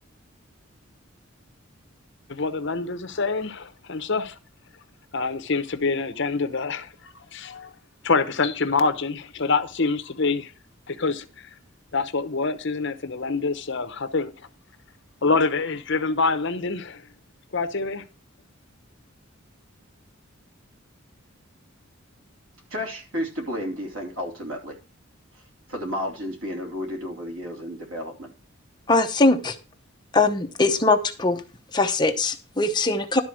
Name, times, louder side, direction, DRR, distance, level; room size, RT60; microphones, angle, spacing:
voice 1, 2.3-4.3 5.1-6.9 7.3-7.7 8.0-10.5 10.9-11.5 11.9-14.3 15.2-17.0 17.5-18.0, left 4 dB, 60° left, 0.9 m, -25 dB
voice 2, 22.7-24.8 25.7-28.3, equal, 75° right, 2.8 m, -32 dB
voice 3, 28.9-29.6 30.1-31.4 31.7-33.2, left 3 dB, 20° left, 0.8 m, -21 dB
12.0 x 4.3 x 6.2 m
head